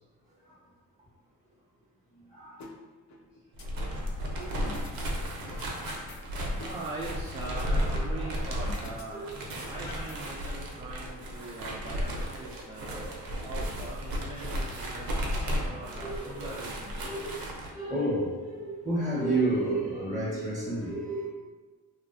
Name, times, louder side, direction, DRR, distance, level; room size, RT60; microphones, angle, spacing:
voice 1, 2.1-2.6 4.3-5.2 8.0-8.1 9.1-9.4 12.8-13.1 16.0-16.6 17.1-17.5 17.7-21.3, right 2 dB, ahead, -7 dB, 0.7 m, -32 dB
sound 1, 2.6-2.7 3.1-4.1 4.6-5.0 5.3-6.2 6.5-8.2 8.6-9.0 9.3-10.6, left 4 dB, 50° left, 0.5 m, -47 dB
sound 2, 3.5-17.7, equal, 70° right, 0.6 m, -34 dB
voice 2, 6.6-9.3 9.7-13.0 13.4-15.3 15.7-17.1, right 2 dB, 15° right, -5 dB, 0.3 m, -41 dB
2.4 x 2.3 x 2.4 m, 1.3 s
cardioid pair, 85°, 36 cm